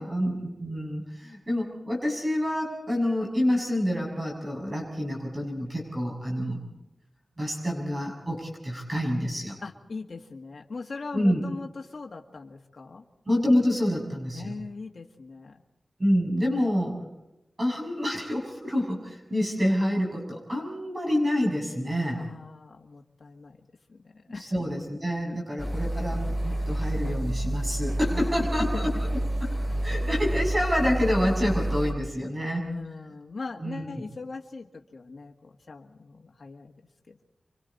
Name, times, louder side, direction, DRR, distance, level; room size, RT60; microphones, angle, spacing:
voice 1, 0.0-6.7 7.4-9.6 11.1-11.4 13.3-14.5 16.0-16.9 17.6-22.2 24.4-28.9 29.4-29.5 29.8-32.6 33.6-33.9, equal, 30° right, -1 dB, 7.0 m, -27 dB
voice 2, 9.6-13.1 14.3-15.6 22.1-23.6 23.9-24.5 28.1-28.9 30.0-30.1 32.6-36.7 37.1-37.2, left 4 dB, 60° left, 1 dB, 1.8 m, -40 dB
sound 1, 25.6-31.9, right 1 dB, 5° right, 3.8 m, -29 dB
30.0 x 24.5 x 4.2 m, 0.93 s
wide cardioid pair, 90°, 0 cm